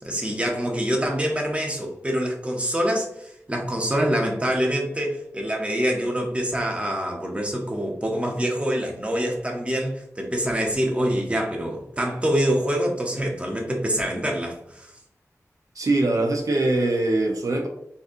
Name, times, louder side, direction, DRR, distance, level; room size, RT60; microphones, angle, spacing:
voice 1, 0.0-14.9, equal, 20° right, 1 dB, 0.8 m, -25 dB
voice 2, 15.7-17.7, right 2 dB, 75° right, 2 dB, 0.7 m, -22 dB
4.0 x 2.8 x 2.5 m, 0.70 s
wide cardioid pair, 75°, 6 cm